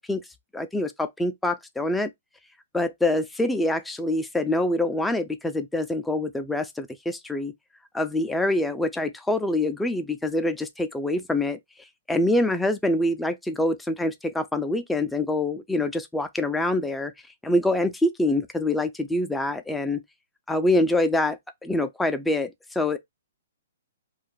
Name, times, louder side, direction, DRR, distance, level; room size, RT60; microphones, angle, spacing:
voice 1, 0.5-2.1 2.7-7.5 7.9-11.6 12.1-17.1 17.4-20.0 20.5-23.0, left 1 dB, 5° left, 0.4 m, -25 dB
2.5 x 2.4 x 3.6 m
hypercardioid pair, 135°, 0 cm